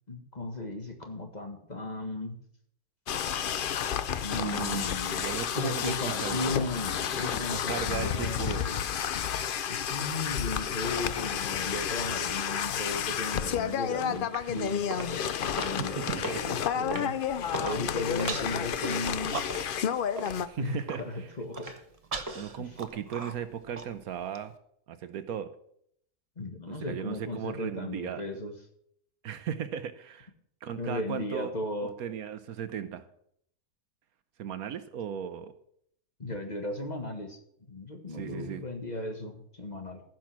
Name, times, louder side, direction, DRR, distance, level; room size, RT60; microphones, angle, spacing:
voice 1, 0.1-2.4 4.2-5.2 5.6-8.8 9.6-19.4 20.6-21.7 22.6-22.7 26.4-28.5 30.8-31.9 36.2-37.4 37.7-40.0, left 2 dB, 30° left, 4 dB, 1.6 m, -36 dB
sound 1, 3.1-20.5, left 8 dB, 75° left, 0.4 m, -31 dB
voice 2, 4.4-6.8 7.1-8.7 15.8-16.4 20.4-21.3 22.3-24.5 24.9-25.5 26.7-28.2 29.2-30.3 30.6-31.5 31.8-33.1 34.4-35.5 38.1-38.6, right 9 dB, 70° right, 12 dB, 1.2 m, -37 dB
sound 2, 14.3-14.6 14.9-15.1 15.6-15.9 16.2-16.4 16.9-17.2 17.5-17.8 18.2-19.0 19.5-19.9 20.2-20.3 20.9-21.0 21.6-21.7 22.3-22.4 22.9-23.0, equal, 15° right, 1.6 m, -36 dB
Human voice, 17.4-17.8 18.3-18.6 18.9-19.9 20.2-20.3 20.6-21.0 21.5-24.4, right 4 dB, 30° right, 0.8 m, -38 dB
15.0 x 6.2 x 6.0 m, 0.69 s
omnidirectional pair, 1.6 m